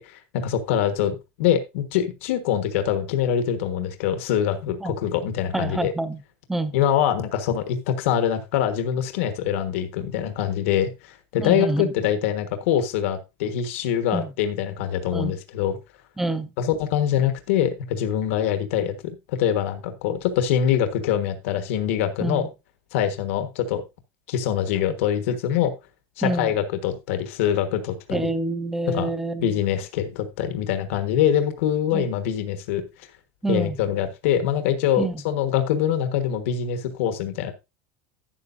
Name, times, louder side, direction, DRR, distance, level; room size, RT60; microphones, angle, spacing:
voice 1, 0.0-5.9 6.7-15.8 16.6-18.9 19.3-22.4 22.9-23.8 24.3-25.7 26.2-28.3 28.9-29.1 29.4-33.1 33.5-37.5, left 9 dB, 75° left, 1.4 m, -24 dB
voice 2, 5.5-6.2 6.5-6.8 11.4-11.9 14.1-14.3 15.1-15.3 16.2-16.5 22.2-22.5 26.2-26.5 28.1-29.6 31.9-32.1 33.4-33.8 35.0-35.1, right 2 dB, 5° right, 0.7 m, -27 dB
11.5 x 9.2 x 2.6 m
cardioid pair, 180°, 7 cm